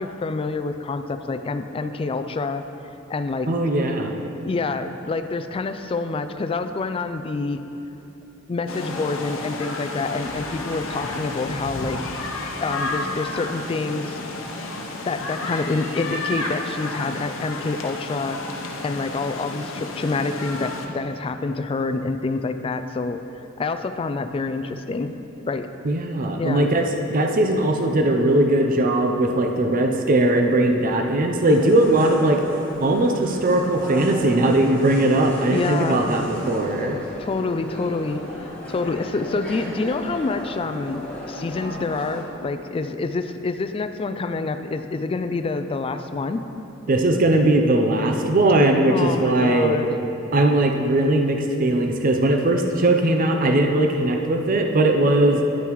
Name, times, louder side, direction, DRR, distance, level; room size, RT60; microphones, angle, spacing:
voice 1, 0.0-2.6 3.1-3.5 4.4-7.6 8.5-12.0 12.6-14.2 15.1-18.4 18.8-23.2 23.6-25.7 26.4-26.7 35.5-36.1 37.2-46.5 48.9-49.9, left 3 dB, 25° left, 9 dB, 0.3 m, -27 dB
voice 2, 3.5-4.2 25.8-26.8 27.1-32.4 32.8-37.0 46.9-49.8 50.3-55.4, right 1 dB, 45° right, 3 dB, 0.5 m, -19 dB
sound 1, 8.7-20.9, left 2 dB, 80° left, 0.8 m, -31 dB
sound 2, 31.5-42.2, equal, 5° left, 1.6 m, -36 dB
9.7 x 9.1 x 3.1 m, 2.9 s
head